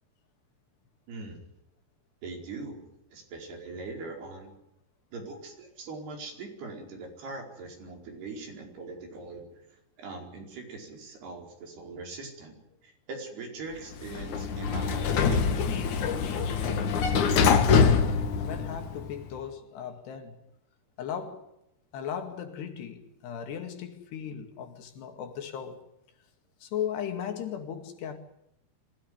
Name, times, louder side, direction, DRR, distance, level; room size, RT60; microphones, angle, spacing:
voice 1, 1.1-1.4 2.2-2.9 3.1-4.5 5.1-9.5 10.0-15.7, right 3 dB, 75° right, 6.8 m, -41 dB
Sliding door, 13.9-19.1, left 6 dB, 55° left, 2.8 m, -24 dB
voice 2, 16.9-17.8 18.4-20.4 21.0-21.5 21.9-25.8 26.6-28.2, left 8 dB, 85° left, 4.4 m, -37 dB
25.0 x 16.5 x 9.6 m
omnidirectional pair, 4.7 m